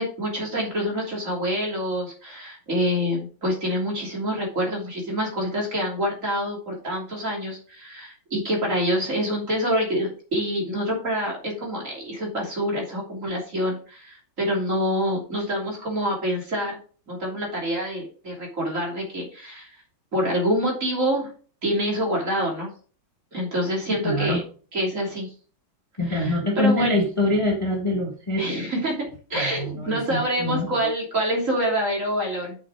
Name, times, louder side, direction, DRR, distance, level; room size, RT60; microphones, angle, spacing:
voice 1, 0.0-16.8 17.1-19.7 20.1-21.3 21.6-22.7 23.3-24.4 24.7-25.3 26.1-27.0 28.4-29.0 29.3-32.6, equal, 40° right, -2 dB, 3.6 m, -26 dB
voice 2, 23.9-24.4 26.0-28.6 29.3-30.9, left 1 dB, 20° left, 1 dB, 1.3 m, -25 dB
7.3 x 6.5 x 4.8 m, 0.41 s
omnidirectional pair, 2.1 m